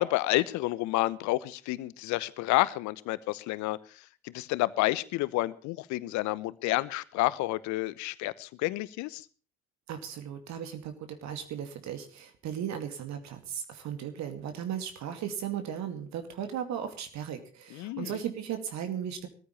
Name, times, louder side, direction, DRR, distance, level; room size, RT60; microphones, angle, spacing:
voice 1, 0.0-3.8 4.2-9.2 17.7-18.1, left 18 dB, 60° left, 19 dB, 1.0 m, -29 dB
voice 2, 9.9-19.3, right 9 dB, 60° right, 7 dB, 2.4 m, -36 dB
21.0 x 14.5 x 3.2 m, 0.38 s
figure-of-eight pair, 50°, 32 cm